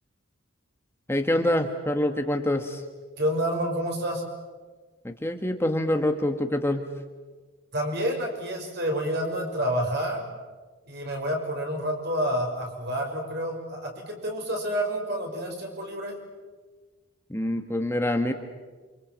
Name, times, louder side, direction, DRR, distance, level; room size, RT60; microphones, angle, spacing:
voice 1, 1.1-2.8 5.0-6.9 17.3-18.3, left 1 dB, 10° left, 5 dB, 1.5 m, -25 dB
voice 2, 3.2-4.2 7.7-10.2 10.9-16.2, equal, 55° right, 2 dB, 6.4 m, -29 dB
28.5 x 26.0 x 7.6 m, 1.4 s
head